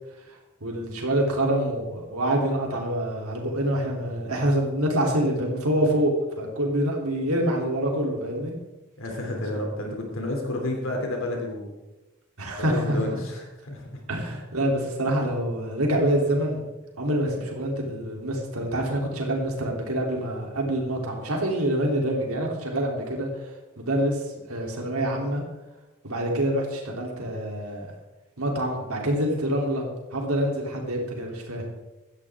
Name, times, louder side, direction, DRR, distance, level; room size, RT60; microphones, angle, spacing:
voice 1, 0.3-8.5 9.5-9.6 12.4-13.2 14.1-16.6 17.0-23.4 23.8-25.4 26.0-27.9 28.4-29.8 30.1-31.7, right 1 dB, 85° right, 0 dB, 3.3 m, -26 dB
voice 2, 9.0-11.7 12.6-13.9, left 1 dB, 65° left, 1 dB, 3.0 m, -30 dB
17.0 x 13.0 x 3.6 m, 1.1 s
head